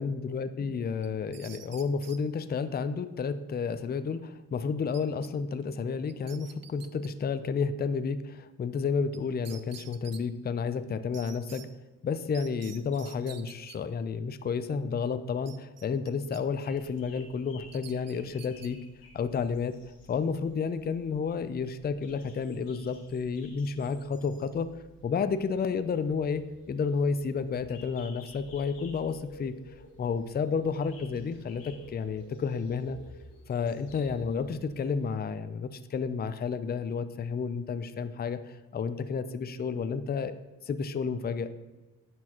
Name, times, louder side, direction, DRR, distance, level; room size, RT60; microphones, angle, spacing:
voice 1, 0.0-11.7 12.0-18.8 19.1-19.7 20.1-24.7 25.0-26.4 26.7-29.6 30.0-33.0 33.5-40.3 40.6-41.5, left 5 dB, 30° left, 12 dB, 0.4 m, -31 dB
sound 1, 1.0-2.2 4.9-5.3 5.6-5.7 6.1-7.1 9.1-9.2 9.5-10.2 11.1-11.7 12.3-13.8 15.5-16.4 16.8-17.0 17.7-18.7, right 9 dB, 50° right, 0.5 m, -49 dB
sound 2, 16.6-35.1, left 2 dB, 90° left, 1.2 m, -53 dB
9.6 x 4.5 x 2.9 m, 1.1 s
cardioid pair, 60°, 34 cm